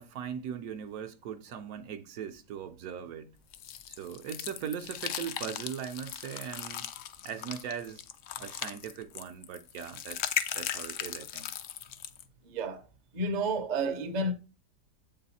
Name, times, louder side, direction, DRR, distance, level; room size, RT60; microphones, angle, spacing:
voice 1, 0.0-3.4 3.9-6.9 7.2-8.0 8.4-11.5, right 8 dB, 70° right, 1.0 m, -40 dB
sound 1, 3.5-12.2, left 10 dB, 70° left, 0.7 m, -38 dB
voice 2, 12.4-12.8 13.1-14.3, right 2 dB, 45° right, 0.5 m, -30 dB
7.6 x 3.9 x 4.1 m
omnidirectional pair, 1.7 m